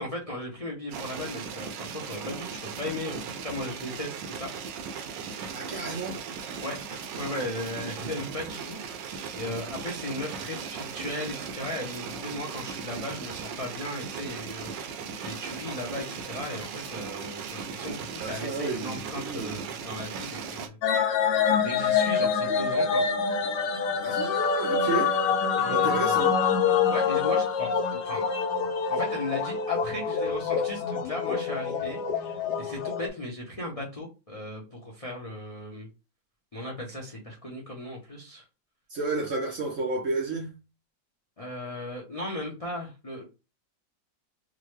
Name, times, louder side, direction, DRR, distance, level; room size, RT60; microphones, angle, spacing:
voice 1, 0.0-4.5 6.6-21.3 21.6-23.0 25.6-26.2 26.9-28.2 28.9-35.9 36.5-38.4 41.4-43.2, left 1 dB, 50° left, 0.4 m, -37 dB
sound 1, 0.9-20.7, right 6 dB, 85° right, 1.3 m, -38 dB
voice 2, 5.5-6.2 18.2-19.6 24.0-25.2 25.7-26.3 38.9-40.5, right 3 dB, 60° right, 0.8 m, -31 dB
sound 2, 20.8-33.1, left 6 dB, 75° left, 1.2 m, -26 dB
3.6 x 2.2 x 3.1 m
omnidirectional pair, 1.9 m